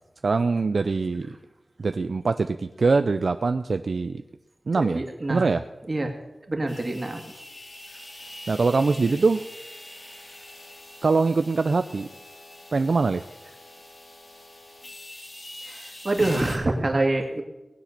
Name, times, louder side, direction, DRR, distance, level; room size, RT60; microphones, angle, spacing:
voice 1, 0.2-1.3 1.8-4.2 4.7-5.0 5.3-5.6 8.5-9.4 11.0-12.1 12.7-13.2, right 4 dB, 65° right, 9 dB, 0.5 m, -23 dB
voice 2, 4.8-5.5 5.9-6.1 6.5-7.2 15.6-17.4, right 2 dB, 40° right, 3 dB, 2.3 m, -26 dB
sound 1, 6.7-16.6, left 1 dB, 55° left, 3.6 m, -43 dB
19.5 x 7.7 x 6.7 m, 1.0 s
wide cardioid pair, 95°, 0 cm